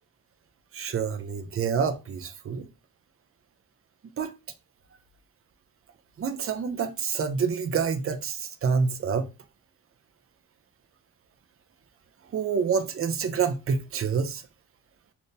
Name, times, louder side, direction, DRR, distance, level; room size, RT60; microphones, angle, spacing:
voice 1, 0.7-2.7 4.2-4.3 6.2-9.3 12.3-14.4, right 6 dB, 35° right, 0.4 m, -27 dB
3.4 x 2.5 x 2.6 m
cardioid pair, 95°, 44 cm